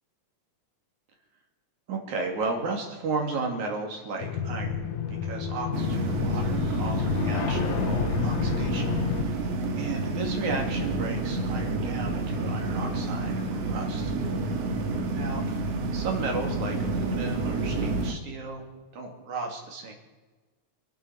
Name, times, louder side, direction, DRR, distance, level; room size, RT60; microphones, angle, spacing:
voice 1, 1.9-8.9 9.2-9.4 9.8-14.1 15.2-18.6 18.9-19.9, right 3 dB, 80° right, 2 dB, 3.8 m, -34 dB
sound 1, 4.2-9.2, left 6 dB, 80° left, 2.5 m, -29 dB
sound 2, 5.7-18.1, right 2 dB, 65° right, 2.5 m, -29 dB
27.5 x 10.0 x 4.6 m, 1.3 s
omnidirectional pair, 3.3 m